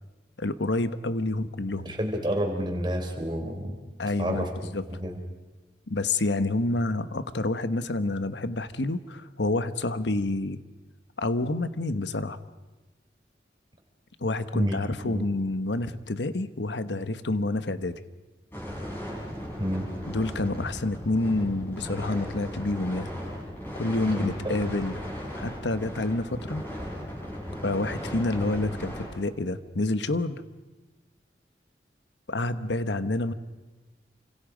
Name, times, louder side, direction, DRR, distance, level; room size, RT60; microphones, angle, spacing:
voice 1, 0.4-1.9 4.0-4.4 4.7-4.8 5.9-10.6 11.2-12.4 14.2-18.0 20.1-23.1 23.7-25.0 25.4-26.6 27.6-30.4 32.3-33.3, left 2 dB, 90° left, 12 dB, 1.2 m, -28 dB
voice 2, 1.8-3.8 4.2-4.5 4.9-5.2 14.5-15.2 19.6-19.9 24.1-24.6, equal, 25° right, 2 dB, 3.9 m, -30 dB
sound 1, 18.5-29.1, equal, 10° left, 7.4 m, -37 dB
28.5 x 26.0 x 5.1 m, 1.2 s
head